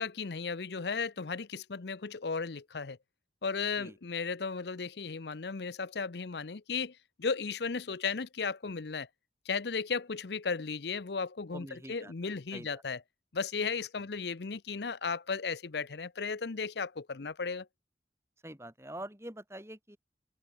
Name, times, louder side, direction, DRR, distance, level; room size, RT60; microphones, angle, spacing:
voice 1, 0.0-3.0 3.4-9.1 9.5-13.0 13.3-17.7, left 5 dB, 70° left, 0.7 m, -35 dB
voice 2, 11.5-12.8 18.4-20.0, right 1 dB, 15° right, 7.0 m, -46 dB
head